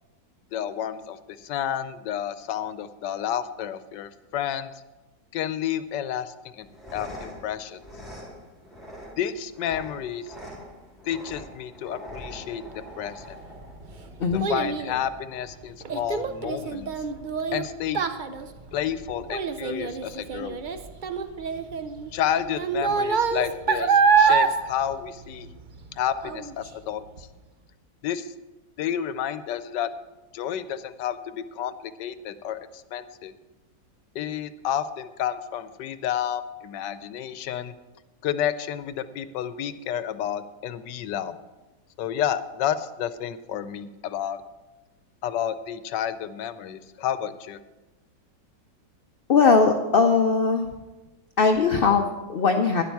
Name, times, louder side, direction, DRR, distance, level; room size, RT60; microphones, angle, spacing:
voice 1, 0.5-4.7 5.3-6.7 6.9-7.8 9.2-10.4 11.0-12.6 13.0-13.4 14.3-16.9 17.5-18.1 18.7-20.6 22.1-25.5 26.0-27.3 28.0-28.3 28.8-29.9 30.3-33.3 34.1-37.7 38.2-41.3 42.0-44.4 45.2-47.6, left 10 dB, 85° left, 13 dB, 1.3 m, -30 dB
sound 1, 6.6-14.5, equal, ahead, 2.8 m, -43 dB
Child speech kid speaking, 13.2-25.9 26.2-26.7 27.2-27.3, right 5 dB, 75° right, 0.4 m, -25 dB
voice 2, 49.3-50.7 51.4-52.8, left 4 dB, 55° left, 5 dB, 0.6 m, -20 dB
11.5 x 11.0 x 4.7 m, 1.1 s
omnidirectional pair, 1.8 m